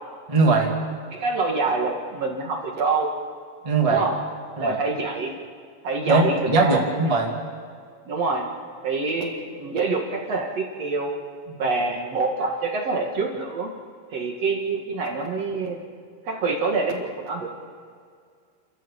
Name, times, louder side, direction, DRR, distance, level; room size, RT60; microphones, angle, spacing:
voice 1, 0.3-0.7 3.6-4.0 4.6-4.8 6.0-7.3 11.5-11.6, right 3 dB, 15° right, 0 dB, 1.2 m, -20 dB
voice 2, 1.1-3.1 3.9-4.1 4.6-5.4 5.8-6.8 7.1-7.2 8.1-8.5 8.8-11.1 11.6-13.7 14.1-15.8 16.2-17.5, right 3 dB, 45° right, 0 dB, 2.5 m, -26 dB
30.0 x 14.0 x 7.4 m, 2.1 s
omnidirectional pair, 4.9 m